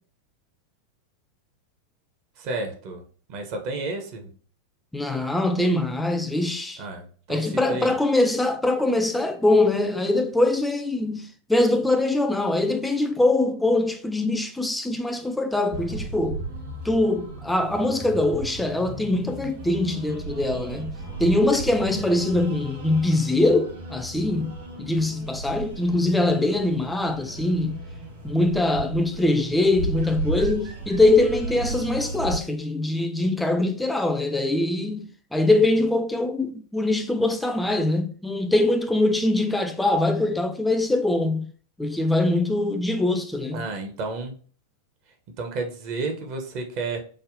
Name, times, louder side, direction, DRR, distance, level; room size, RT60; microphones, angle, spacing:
voice 1, 2.4-3.0 3.3-4.3 6.8-7.9 43.5-44.3 45.4-47.0, right 3 dB, 45° right, 0.6 m, -31 dB
voice 2, 4.9-6.8 7.3-16.4 16.8-20.9 21.2-27.8 28.2-41.5 41.8-43.6, left 2 dB, 5° left, 0.3 m, -23 dB
sound 1, 15.7-32.4, right 2 dB, 60° right, 1.3 m, -35 dB
3.3 x 2.1 x 2.5 m
figure-of-eight pair, 90°, 0 cm